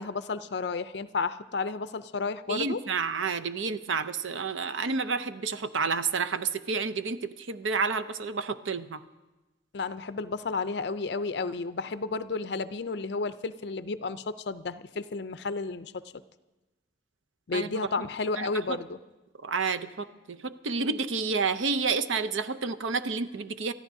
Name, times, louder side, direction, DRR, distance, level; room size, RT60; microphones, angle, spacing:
voice 1, 0.0-2.8 9.7-16.0 17.5-19.0, left 4 dB, 60° left, 13 dB, 0.5 m, -32 dB
voice 2, 2.5-9.0 17.5-17.7 18.4-18.8 19.4-23.7, right 4 dB, 85° right, 10 dB, 0.7 m, -30 dB
29.5 x 14.0 x 2.7 m, 1.1 s
head